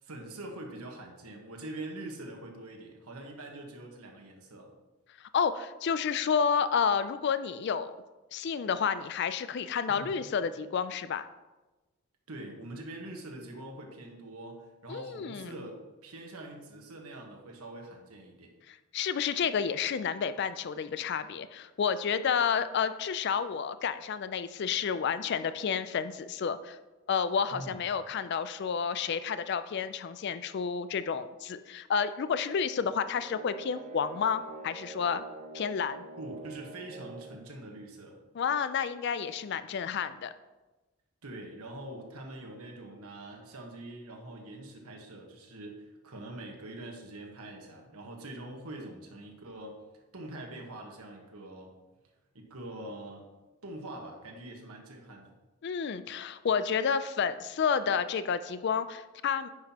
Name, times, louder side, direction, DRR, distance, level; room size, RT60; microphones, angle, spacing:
voice 1, 0.0-4.7 9.9-10.2 12.3-18.6 27.5-27.8 36.2-38.2 41.2-49.8 50.1-51.7 52.3-53.3 53.6-55.3, right 1 dB, 85° right, 1 dB, 1.3 m, -44 dB
voice 2, 5.2-7.9 8.3-11.3 14.9-15.5 18.7-26.8 27.1-35.2 35.5-36.1 38.4-40.3 55.6-59.5, left 6 dB, 50° left, 12 dB, 0.3 m, -30 dB
sound 1, 33.2-37.5, right 2 dB, 35° right, 0.6 m, -45 dB
9.5 x 5.9 x 2.9 m, 1.1 s
head